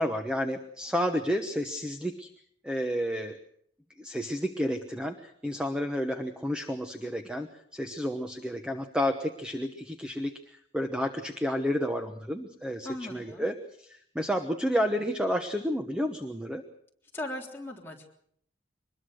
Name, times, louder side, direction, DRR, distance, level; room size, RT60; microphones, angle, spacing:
voice 1, 0.0-2.3 2.6-3.4 4.0-16.6, equal, 5° right, 6 dB, 1.1 m, -31 dB
voice 2, 12.8-13.4 17.1-18.2, left 1 dB, 10° left, -1 dB, 3.5 m, -38 dB
24.0 x 21.0 x 6.5 m, 0.66 s
head